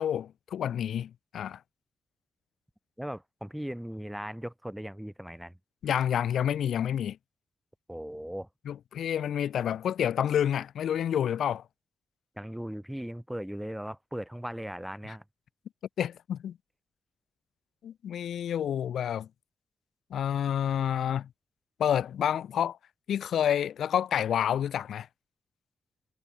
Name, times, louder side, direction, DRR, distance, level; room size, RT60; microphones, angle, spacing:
voice 1, 0.0-1.6 5.8-7.2 8.7-11.6 16.0-16.6 17.8-19.3 20.1-21.3 21.8-22.8 23.1-25.1, left 9 dB, 75° left, 0.5 m, -29 dB
voice 2, 3.0-5.5 7.9-8.5 12.4-15.2, equal, 5° right, 3.9 m, -38 dB
supercardioid pair, 45°, 0 cm